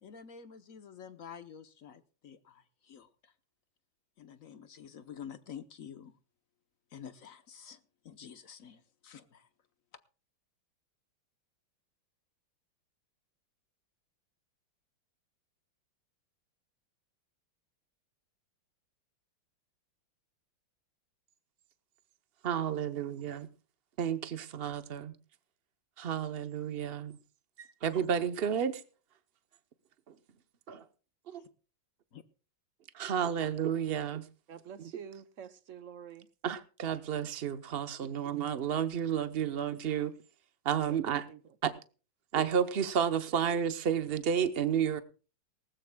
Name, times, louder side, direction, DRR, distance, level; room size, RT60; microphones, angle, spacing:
voice 1, 0.0-3.3 4.2-6.1 6.9-7.8 8.0-9.5 32.1-32.2, left 8 dB, 55° left, 1.0 m, -49 dB
voice 2, 22.4-23.5 24.0-25.2 26.0-27.2 27.6-28.8 30.1-30.2 30.7-30.9 31.3-31.4 32.9-34.3 34.8-34.9 36.4-40.1 40.6-41.3 41.6-41.7 42.3-45.0, right 8 dB, 90° right, 0.5 m, -31 dB
voice 3, 34.5-36.3 38.0-38.1 40.9-41.4, right 8 dB, 60° right, 0.8 m, -48 dB
19.5 x 18.5 x 2.2 m
omnidirectional pair, 2.3 m